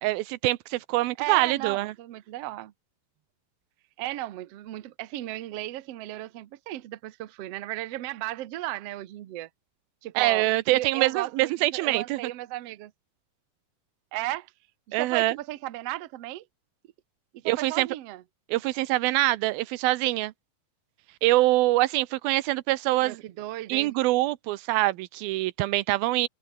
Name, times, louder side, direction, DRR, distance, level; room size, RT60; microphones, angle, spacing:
voice 1, 0.0-1.9 10.2-12.2 14.9-15.4 17.5-17.9 18.5-20.3 21.2-23.2 23.7-26.3, right 18 dB, 85° right, 2.6 m, -24 dB
voice 2, 1.2-2.7 4.0-9.5 10.0-12.9 14.1-14.5 14.9-16.4 17.3-18.2 23.0-23.9, right 15 dB, 65° right, 1.6 m, -35 dB
omnidirectional pair, 4.2 m